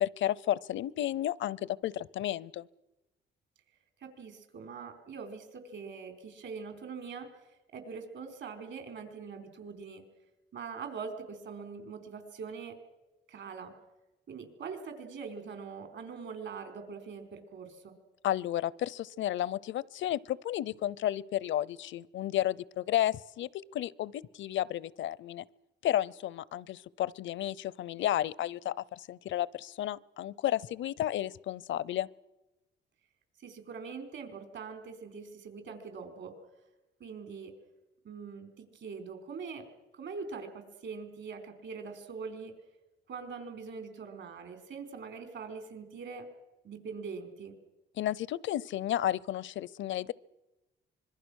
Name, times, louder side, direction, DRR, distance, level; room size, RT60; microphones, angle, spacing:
voice 1, 0.0-2.7 18.2-25.4 25.8-32.1 48.0-50.1, left 12 dB, 70° left, 23 dB, 0.7 m, -32 dB
voice 2, 4.0-7.3 7.7-10.0 10.5-12.7 13.3-13.7 14.3-17.9 33.4-36.3 37.0-37.5 38.0-39.7 39.9-42.5 43.1-46.3 46.6-47.5, right 5 dB, 65° right, 7 dB, 4.6 m, -43 dB
25.5 x 22.0 x 6.4 m, 1.0 s
cardioid pair, 90°, 20 cm